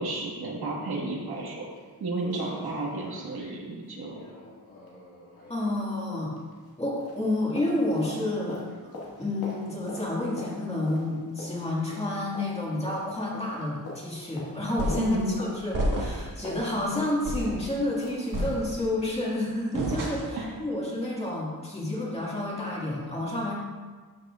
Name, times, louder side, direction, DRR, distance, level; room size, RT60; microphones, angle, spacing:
voice 1, 0.0-1.7 2.0-4.2 15.0-15.4 20.3-20.5, right 2 dB, 80° right, -2 dB, 1.8 m, -32 dB
sound 1, 1.3-1.4 1.8-1.9 2.2-6.8 7.0-18.6 19.0-19.1, left 2 dB, 70° left, 2.1 m, -44 dB
voice 2, 5.5-6.3 6.8-8.6 9.2-23.5, left 1 dB, 15° left, -5 dB, 2.0 m, -30 dB
sound 2, 14.8-15.2 15.7-16.3 16.7-16.9 17.2-17.6 18.3-19.0 19.7-20.5, right 1 dB, 60° right, 1.6 m, -30 dB
12.5 x 6.4 x 2.5 m, 1.4 s
wide cardioid pair, 140°, 37 cm